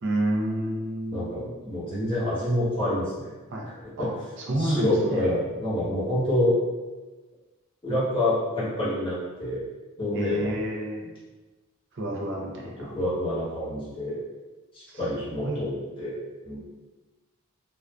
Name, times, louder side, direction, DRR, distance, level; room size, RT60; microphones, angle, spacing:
voice 1, 0.0-1.4 3.5-3.7 4.0-4.1 4.5-5.3 10.1-11.0 11.9-13.0 14.9-15.0 15.4-15.6, right 1 dB, 55° right, -2 dB, 0.5 m, -29 dB
voice 2, 1.1-3.3 4.6-6.6 7.8-9.6 10.0-10.5 12.8-14.2 14.7-16.2 16.4-16.6, left 1 dB, 25° left, -10 dB, 1.0 m, -27 dB
2.5 x 2.2 x 2.3 m, 1.2 s
head